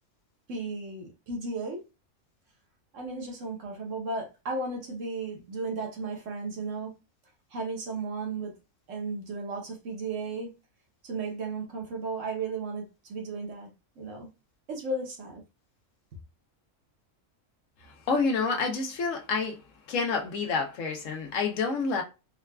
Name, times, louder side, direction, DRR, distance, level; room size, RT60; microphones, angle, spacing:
voice 1, 0.5-1.8 2.9-6.9 7.5-8.6 8.9-10.6 11.0-13.7 14.0-14.3 14.7-15.4, right 3 dB, 70° right, 1.2 m, -34 dB
voice 2, 18.1-19.6 19.9-22.0, left 4 dB, 75° left, 1.0 m, -28 dB
3.8 x 2.3 x 2.2 m
omnidirectional pair, 1.4 m